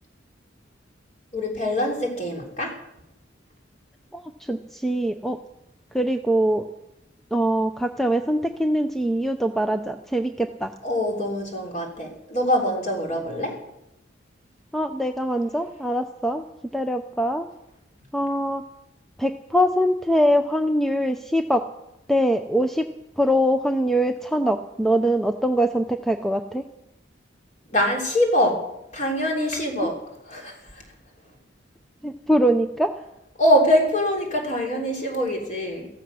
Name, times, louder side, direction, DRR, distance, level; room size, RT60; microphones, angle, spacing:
voice 1, 1.3-2.8 10.8-13.6 27.7-30.8 33.4-35.9, equal, 40° left, 1 dB, 3.5 m, -24 dB
voice 2, 4.1-5.4 5.9-6.6 7.3-10.7 14.7-16.4 16.7-17.5 18.1-18.6 19.2-21.6 22.1-22.8 23.2-26.6 29.8-29.9 32.0-32.9, equal, ahead, 6 dB, 0.5 m, -23 dB
15.5 x 14.0 x 6.3 m, 0.87 s
head